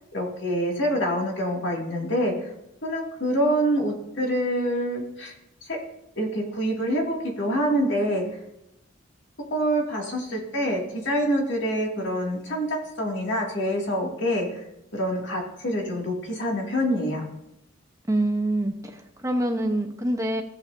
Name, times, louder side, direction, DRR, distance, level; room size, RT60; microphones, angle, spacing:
voice 1, 0.1-2.5 2.8-5.3 5.7-5.8 6.2-8.2 9.5-14.6 14.9-17.3, equal, 60° left, -1 dB, 2.2 m, -26 dB
voice 2, 18.1-20.4, right 1 dB, 15° right, 4 dB, 0.8 m, -25 dB
15.0 x 7.7 x 2.6 m, 0.83 s
head